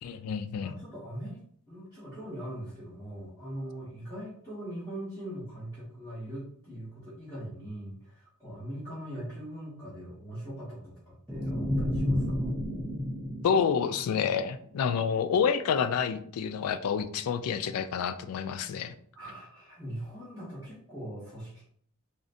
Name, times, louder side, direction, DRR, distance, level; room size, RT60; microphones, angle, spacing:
voice 1, 0.0-0.7 13.4-18.9, left 7 dB, 75° left, 11 dB, 0.3 m, -28 dB
voice 2, 0.6-12.5 19.1-21.6, right 1 dB, 10° left, -12 dB, 1.0 m, -41 dB
sound 1, 11.3-14.5, left 1 dB, 5° right, 0.5 m, -31 dB
3.7 x 2.1 x 2.6 m, 0.62 s
head